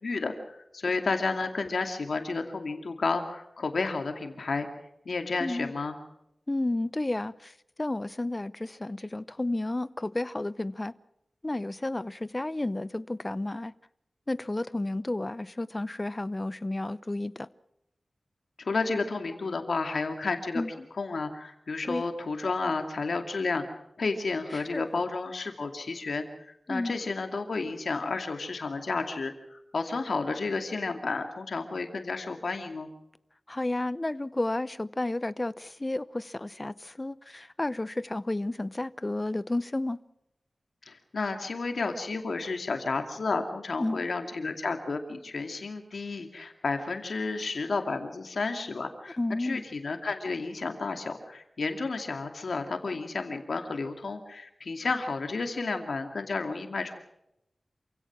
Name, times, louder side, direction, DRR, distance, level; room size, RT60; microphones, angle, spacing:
voice 1, 0.0-4.7 5.1-6.0 18.6-20.6 20.9-23.6 24.0-26.3 26.7-32.9 40.9-56.9, left 3 dB, 80° left, 2.5 m, -31 dB
voice 2, 5.4-5.7 6.5-10.9 11.4-13.7 14.3-17.5 20.5-20.7 21.8-22.0 24.5-24.8 26.7-27.0 33.5-40.0 43.8-44.0 49.2-49.6, left 2 dB, 30° left, 0.7 m, -32 dB
27.5 x 16.5 x 6.2 m
wide cardioid pair, 65°, 0 cm